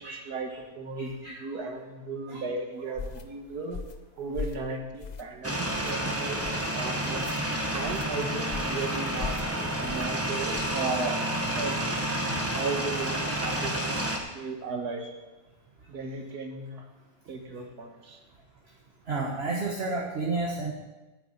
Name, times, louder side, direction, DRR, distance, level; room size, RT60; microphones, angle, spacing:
voice 1, 0.0-3.8 4.2-7.3 7.7-14.1 14.3-15.0 15.9-16.8 17.3-18.2, right 3 dB, 75° right, 4 dB, 1.9 m, -36 dB
voice 2, 1.0-1.4 2.3-2.4 6.0-6.1 9.5-9.6 19.1-20.7, right 3 dB, 40° right, -2 dB, 1.5 m, -31 dB
sound 1, 3.0-3.2 3.7-4.0 4.3-4.7 5.0-5.4 5.7-5.9 6.4-6.7 7.1-7.4 7.8-8.1 8.5-8.8 9.2-9.5 9.9-10.1 10.5-10.8, left 5 dB, 60° left, 0.4 m, -38 dB
sound 2, 5.4-14.2, right 1 dB, 10° right, 1.2 m, -30 dB
8.6 x 7.0 x 8.5 m, 1.1 s
omnidirectional pair, 1.7 m